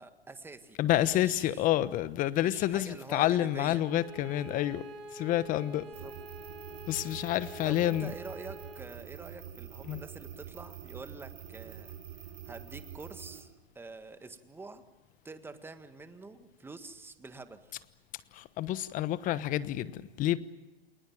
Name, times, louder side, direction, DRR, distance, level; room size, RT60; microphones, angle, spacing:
voice 1, 0.0-1.7 2.3-3.8 5.6-6.1 7.6-12.0 12.4-13.5 13.7-14.8 15.2-17.7, right 3 dB, 5° right, 1.6 m, -46 dB
voice 2, 0.8-4.8 5.1-5.8 6.9-8.1 9.8-10.0 18.3-20.4, left 13 dB, 25° left, 1.1 m, -29 dB
Bowed string instrument, 3.7-8.9, equal, 70° right, 8.0 m, -47 dB
sound 1, 5.9-13.4, right 10 dB, 45° right, 6.4 m, -46 dB
29.5 x 20.5 x 7.4 m
hypercardioid pair, 130°, 31 cm